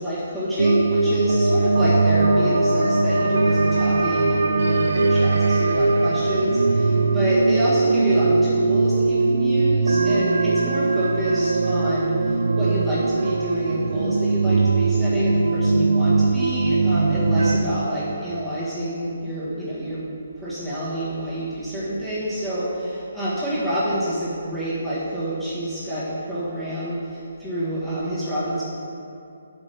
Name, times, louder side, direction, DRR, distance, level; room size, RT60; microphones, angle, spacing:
voice 1, 0.0-20.0 20.4-28.6, equal, ahead, -13 dB, 1.6 m, -28 dB
sound 1, 0.6-17.6, right 3 dB, 90° right, 0.6 m, -20 dB
6.0 x 5.3 x 6.8 m, 2.6 s
hypercardioid pair, 170°, 0 cm